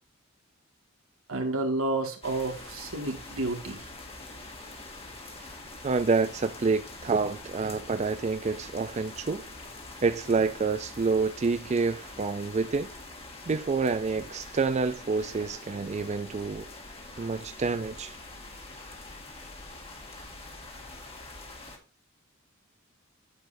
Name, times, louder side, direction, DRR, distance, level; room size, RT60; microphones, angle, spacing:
voice 1, 1.3-3.8, right 2 dB, 85° right, 2.0 m, -30 dB
sound 1, 2.2-21.8, left 2 dB, 30° left, 1.9 m, -44 dB
voice 2, 5.8-9.5 10.0-12.9 13.5-16.7 17.2-18.2, right 4 dB, 35° right, 0.4 m, -28 dB
9.3 x 7.7 x 2.6 m
head